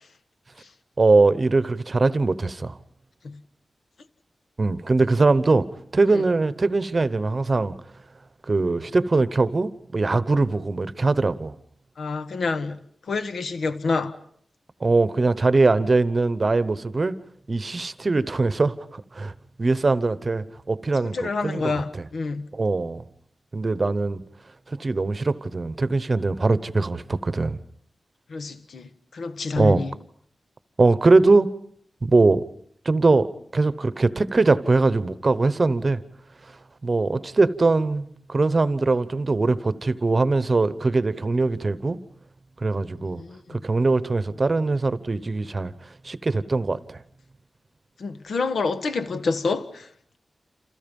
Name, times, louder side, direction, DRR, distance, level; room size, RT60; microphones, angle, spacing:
voice 1, 1.0-2.8 4.6-5.7 5.9-7.7 8.5-11.5 14.8-17.1 17.5-19.3 19.6-21.7 22.5-23.0 23.5-24.2 24.7-27.6 29.6-29.8 30.8-31.5 32.0-32.4 32.8-36.0 36.8-42.0 42.6-43.2 43.5-45.7 46.0-47.0, right 3 dB, 35° right, 1.0 m, -21 dB
voice 2, 12.0-12.8 13.1-14.1 21.1-22.5 28.3-29.9 43.2-43.6 48.0-49.9, left 4 dB, 75° left, 1.5 m, -28 dB
29.0 x 28.0 x 5.4 m
wide cardioid pair, 165°, 0 cm